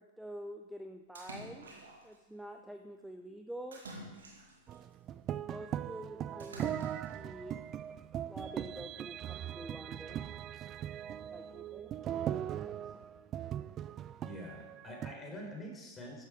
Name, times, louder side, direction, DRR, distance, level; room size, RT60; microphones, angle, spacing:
voice 1, 0.0-1.7 2.0-3.8 5.4-6.9 7.1-7.6 8.3-10.3 11.3-11.9 12.3-12.9, right 1 dB, 5° right, 6 dB, 0.8 m, -47 dB
Splash splatter, 1.2-2.2 3.7-4.8 6.4-7.2, right 1 dB, 75° right, 3.0 m, -49 dB
sound 1, 4.7-15.1, right 10 dB, 35° right, 0.4 m, -40 dB
voice 2, 14.2-16.2, equal, 20° left, 0 dB, 4.5 m, -45 dB
13.5 x 11.5 x 5.2 m, 1.2 s
figure-of-eight pair, 95°, 0 cm